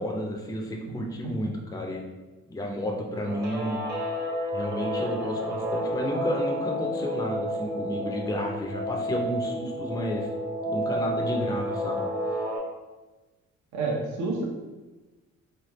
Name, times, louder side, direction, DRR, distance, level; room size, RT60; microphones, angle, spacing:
voice 1, 0.0-2.0 2.5-3.8 4.5-10.3 10.7-12.0, equal, 10° left, 0 dB, 0.5 m, -31 dB
Guitar, 3.1-12.6, equal, 35° right, 0.8 m, -31 dB
voice 2, 13.7-14.4, right 3 dB, 70° right, -2 dB, 0.9 m, -29 dB
3.2 x 2.3 x 3.0 m, 1.2 s
cardioid pair, 90°, 30 cm